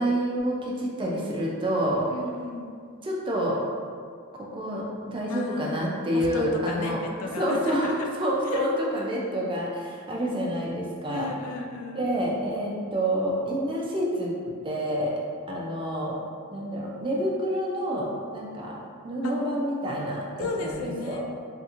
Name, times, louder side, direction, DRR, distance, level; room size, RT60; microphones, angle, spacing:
voice 1, 0.0-2.1 3.0-3.6 4.3-7.0 7.4-11.3 11.9-14.3 14.6-15.2 15.5-16.2 16.5-21.2, equal, 25° right, -4 dB, 0.4 m, -28 dB
voice 2, 2.1-2.7 5.3-5.8 6.1-8.1 8.5-8.7 11.1-12.2 19.2-19.3 20.4-21.2, left 3 dB, 70° left, 2 dB, 0.3 m, -34 dB
2.8 x 2.5 x 2.4 m, 2.2 s
head